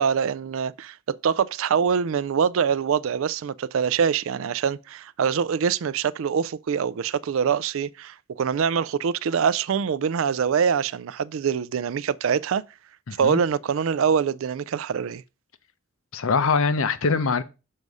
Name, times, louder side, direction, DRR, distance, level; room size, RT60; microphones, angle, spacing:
voice 1, 0.0-12.6 13.2-15.2, right 7 dB, 60° right, 0.3 m, -24 dB
voice 2, 13.1-13.4 16.1-17.4, left 4 dB, 65° left, 0.7 m, -23 dB
6.5 x 4.8 x 5.3 m
head